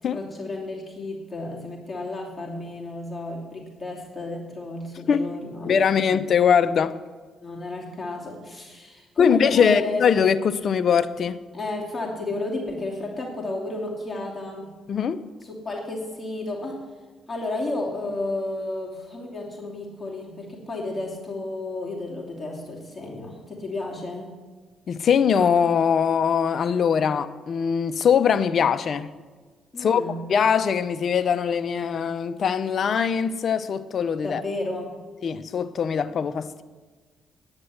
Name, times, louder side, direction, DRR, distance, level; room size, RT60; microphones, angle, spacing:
voice 1, 0.0-5.7 7.4-10.0 11.5-14.7 15.4-16.9 17.3-24.4 29.7-30.2 34.2-35.0, left 2 dB, 25° left, 2.7 m, -32 dB
voice 2, 5.6-7.0 9.2-11.4 14.9-15.2 24.9-29.1 29.8-30.0 30.3-34.4 35.2-36.6, left 7 dB, 55° left, 0.7 m, -22 dB
9.7 x 9.7 x 7.8 m
cardioid pair, 90°, 0 cm